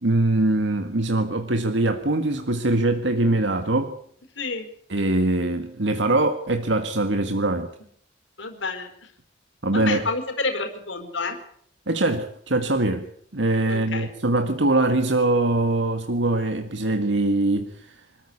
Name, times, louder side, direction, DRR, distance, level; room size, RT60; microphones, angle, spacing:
voice 1, 0.0-4.0 4.9-7.7 9.6-10.0 11.9-13.1 13.3-18.0, right 2 dB, 75° right, 7 dB, 1.7 m, -22 dB
voice 2, 4.4-4.7 8.4-8.9 9.7-11.4 13.7-14.1, left 3 dB, 85° left, 6 dB, 4.3 m, -29 dB
26.0 x 14.0 x 9.7 m, 0.68 s
head